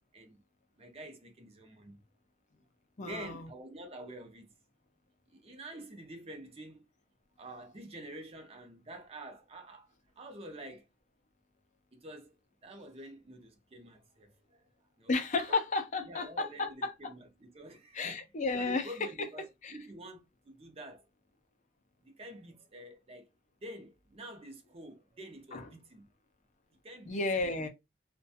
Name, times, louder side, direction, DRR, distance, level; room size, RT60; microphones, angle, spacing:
voice 1, 0.8-2.0 3.0-4.5 5.3-6.8 7.4-9.9 10.2-10.9 11.9-14.7 15.0-15.1 15.5-15.6 16.0-18.3 18.5-19.4 19.7-21.1 22.0-23.3 23.6-26.1 26.8-27.5, right 1 dB, 35° right, 0.6 m, -48 dB
voice 2, 3.0-3.5 15.1-17.1 17.9-18.9 19.6-19.8 25.5-25.6 27.1-27.7, left 3 dB, 45° left, 0.5 m, -33 dB
2.4 x 2.2 x 2.7 m
head